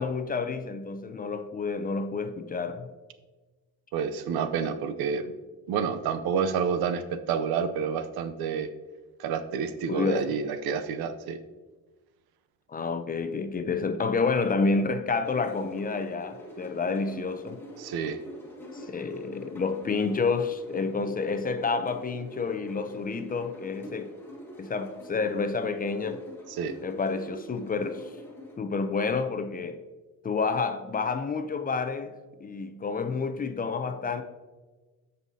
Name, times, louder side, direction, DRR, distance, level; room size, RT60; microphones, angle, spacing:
voice 1, 0.0-2.9 9.9-10.4 12.7-17.6 18.7-24.1 24.6-26.2 26.8-28.1 28.6-29.8 30.2-34.2, left 4 dB, 25° left, 0.4 m, -29 dB
voice 2, 3.9-5.3 5.7-8.7 9.2-11.4 17.8-18.2 26.5-26.8, right 6 dB, 90° right, 0.7 m, -29 dB
sound 1, 15.2-28.6, equal, 5° left, 1.4 m, -45 dB
13.5 x 5.4 x 2.7 m
cardioid pair, 140°, 36 cm